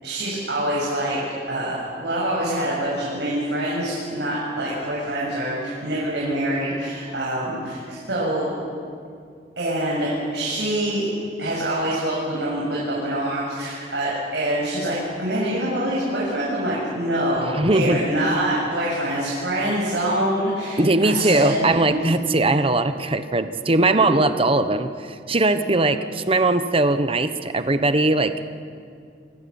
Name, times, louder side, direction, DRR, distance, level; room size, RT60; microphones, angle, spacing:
voice 1, 0.0-8.5 9.6-11.1 11.4-22.0 23.9-24.1, right 1 dB, 75° right, -6 dB, 7.6 m, -25 dB
voice 2, 17.5-18.0 20.8-28.4, right 2 dB, 35° right, 10 dB, 1.2 m, -20 dB
29.0 x 24.0 x 7.3 m, 2.2 s
head